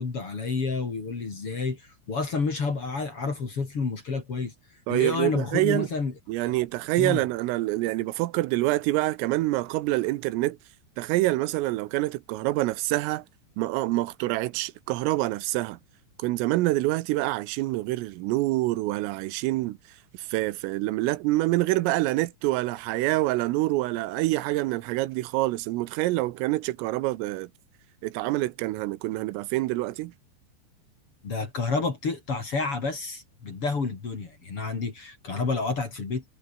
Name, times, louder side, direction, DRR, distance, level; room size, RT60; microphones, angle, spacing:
voice 1, 0.0-4.5 4.9-6.1 6.5-6.6 7.0-7.2 31.2-36.2, left 4 dB, 30° left, 3.4 m, -29 dB
voice 2, 4.9-5.9 6.3-10.6 11.0-13.3 13.6-15.8 16.2-19.8 20.1-27.5 28.0-30.1, right 18 dB, 90° right, 3.6 m, -26 dB
omnidirectional pair, 5.8 m